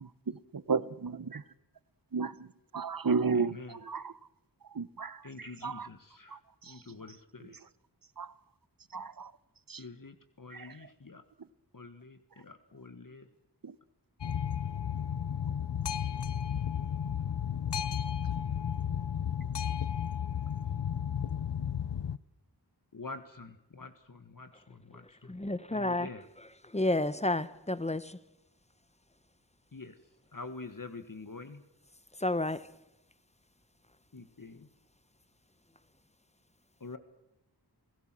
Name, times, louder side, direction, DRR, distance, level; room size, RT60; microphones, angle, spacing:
voice 1, 0.3-1.4 2.1-2.5 2.7-4.1 4.7-5.9 8.2-8.3 8.9-9.3 9.7-9.8 10.5-10.7 13.6-13.7, right 5 dB, 55° right, 1.0 m, -33 dB
voice 2, 3.3-3.8 5.2-6.4 6.7-7.6 9.8-11.2 11.7-13.3 22.9-25.4 25.7-26.2 29.7-29.9 30.3-31.6 34.1-34.7 36.8-37.0, left 3 dB, 50° left, 1.5 m, -46 dB
Boat Water vehicle, 14.2-22.2, left 8 dB, 85° left, 0.7 m, -33 dB
voice 3, 25.2-26.1 26.4-28.2 32.2-32.7, left 2 dB, 15° left, 1.0 m, -31 dB
28.5 x 16.5 x 7.5 m
wide cardioid pair, 55°, 40 cm